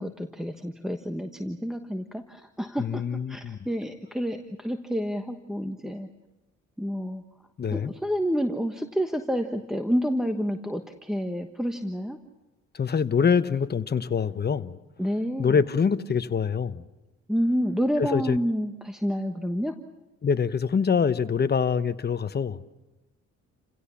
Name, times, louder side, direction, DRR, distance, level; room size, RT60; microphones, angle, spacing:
voice 1, 0.0-3.0 3.3-6.1 6.8-7.2 7.7-12.2 15.0-15.6 17.3-19.7, equal, ahead, 1.3 m, -29 dB
voice 2, 2.8-3.6 7.6-7.9 12.7-14.8 15.4-16.8 18.0-18.4 20.2-22.6, left 6 dB, 35° left, 1.0 m, -25 dB
29.5 x 16.5 x 7.1 m
cardioid pair, 90°, 30 cm